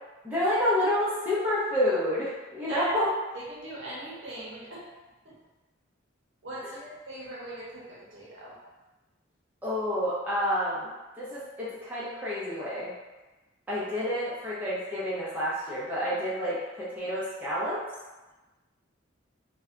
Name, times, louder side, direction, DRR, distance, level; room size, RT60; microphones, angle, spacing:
voice 1, 0.2-3.1 9.6-10.9 11.2-12.9 13.7-17.8, left 1 dB, 10° right, -10 dB, 0.5 m, -29 dB
voice 2, 2.6-3.0 3.3-4.8 5.2-5.4 6.4-8.6, right 1 dB, 65° right, -6 dB, 0.7 m, -39 dB
2.6 x 2.1 x 2.4 m, 1.1 s
head